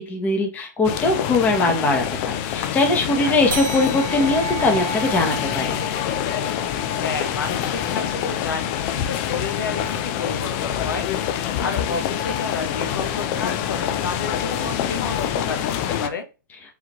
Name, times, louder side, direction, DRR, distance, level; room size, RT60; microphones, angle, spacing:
voice 1, 0.0-5.8, left 2 dB, 15° left, 2 dB, 1.0 m, -21 dB
sound 1, 0.8-16.1, left 10 dB, 35° left, 0.5 m, -26 dB
voice 2, 3.2-3.6 7.0-11.1 11.4-16.3, left 4 dB, 80° left, 5 dB, 1.0 m, -31 dB
sound 2, 3.5-8.4, right 2 dB, 80° right, 1.0 m, -34 dB
4.9 x 2.8 x 3.0 m, 0.30 s
hypercardioid pair, 140°, 11 cm